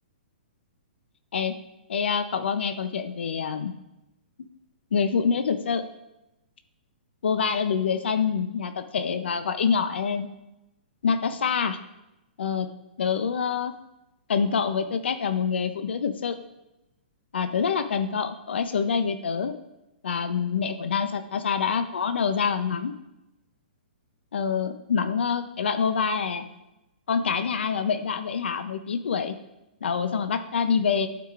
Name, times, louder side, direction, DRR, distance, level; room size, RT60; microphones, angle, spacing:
voice 1, 1.9-3.7 4.9-5.8 7.2-10.3 11.0-11.8 12.4-12.7 13.0-13.7 14.3-16.4 17.3-19.5 20.0-22.9 24.3-26.5 27.1-29.3 29.8-31.1, left 6 dB, 80° left, 8 dB, 0.6 m, -26 dB
12.5 x 4.8 x 2.4 m, 0.94 s
hypercardioid pair, 175°, 6 cm